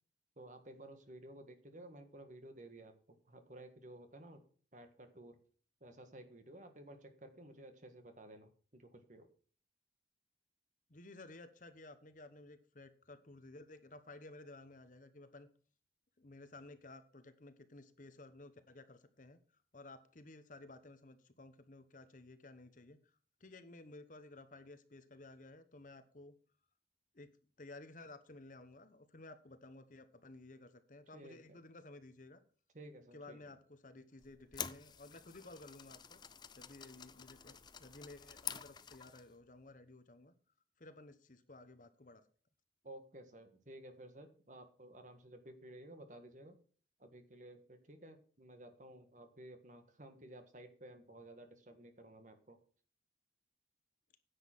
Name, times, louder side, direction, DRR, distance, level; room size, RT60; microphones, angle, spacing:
voice 1, 0.4-4.5 4.7-5.4 5.8-9.3 31.1-31.6 32.7-33.5 42.8-46.6 47.0-52.6, right 1 dB, 45° right, 7 dB, 1.6 m, -54 dB
voice 2, 10.9-15.5 16.2-26.3 27.1-27.3 27.6-32.4 33.1-36.2 36.5-40.3 40.8-42.2, left 2 dB, 45° left, 10 dB, 1.1 m, -55 dB
sound 1, 34.2-39.3, left 8 dB, 25° left, 0.5 m, -48 dB
10.0 x 7.5 x 6.0 m, 0.42 s
head